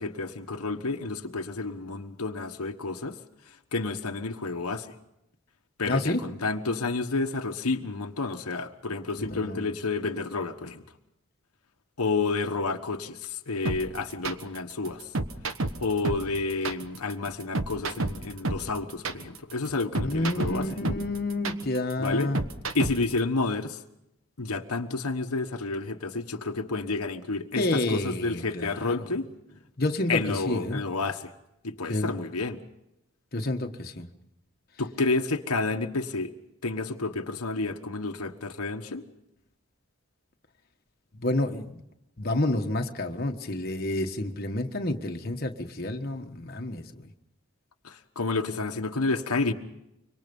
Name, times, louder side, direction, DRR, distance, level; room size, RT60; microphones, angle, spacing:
voice 1, 0.0-3.2 3.7-4.9 5.8-10.8 12.0-15.0 15.8-20.7 22.0-22.3 22.7-23.8 24.4-29.3 30.1-31.3 31.6-32.6 34.8-36.3 36.6-39.0 47.8-49.5, left 3 dB, 90° left, 5 dB, 1.3 m, -30 dB
voice 2, 5.8-6.2 9.2-9.7 19.9-22.4 27.6-29.0 29.8-30.8 31.9-32.2 33.3-34.1 41.2-41.8 42.2-47.1, left 1 dB, 45° left, 3 dB, 1.4 m, -29 dB
sound 1, 13.7-23.2, right 2 dB, 65° right, 1.3 m, -30 dB
25.5 x 24.5 x 5.4 m, 0.85 s
head